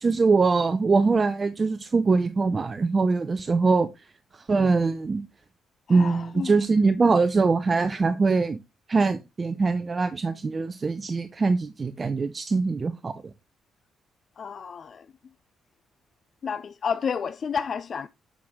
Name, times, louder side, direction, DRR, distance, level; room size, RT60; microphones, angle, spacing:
voice 1, 0.0-3.9 4.5-5.2 5.9-8.6 8.9-13.1, right 4 dB, 35° right, 0.6 m, -23 dB
voice 2, 5.9-6.5 14.4-15.1 16.4-18.1, left 6 dB, 50° left, 0.4 m, -31 dB
8.3 x 6.1 x 3.6 m
cardioid pair, 90°, 0 cm